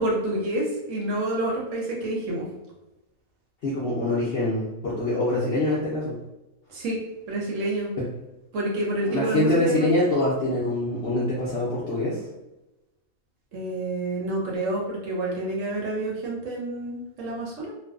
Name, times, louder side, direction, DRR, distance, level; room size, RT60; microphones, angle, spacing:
voice 1, 0.0-2.4 6.7-7.0 7.3-7.9 8.5-9.9 13.5-17.7, right 1 dB, 65° right, -3 dB, 0.8 m, -28 dB
voice 2, 3.6-6.1 9.1-12.2, left 1 dB, 70° left, -7 dB, 0.5 m, -24 dB
2.5 x 2.2 x 2.3 m, 0.97 s
omnidirectional pair, 1.6 m